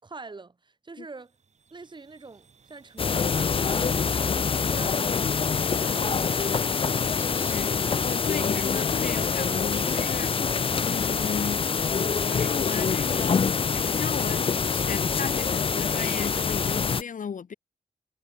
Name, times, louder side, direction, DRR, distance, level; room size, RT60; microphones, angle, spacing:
voice 1, 0.0-1.3 1.7-5.2 5.6-6.9, right 3 dB, 35° right, 5.3 m, -45 dB
sound 1, 1.2-16.7, right 5 dB, 55° right, 3.3 m, -52 dB
sound 2, 3.0-17.0, left 5 dB, 40° left, 0.6 m, -25 dB
voice 2, 7.4-10.4 10.8-11.7 12.3-17.5, left 7 dB, 70° left, 2.0 m, -35 dB
wide cardioid pair, 135°, 14 cm